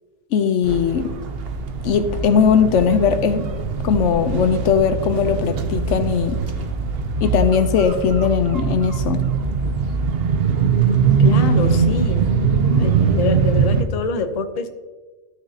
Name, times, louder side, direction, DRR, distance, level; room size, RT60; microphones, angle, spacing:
voice 1, 0.3-1.1 1.8-3.5 3.8-6.4 7.2-9.3, left 7 dB, 90° left, 10 dB, 1.0 m, -19 dB
sound 1, 0.6-13.8, right 5 dB, 60° right, 0.8 m, -21 dB
voice 2, 11.2-12.3 12.8-14.7, left 4 dB, 40° left, 8 dB, 0.6 m, -25 dB
14.0 x 6.3 x 2.8 m, 1.3 s
omnidirectional pair, 1.2 m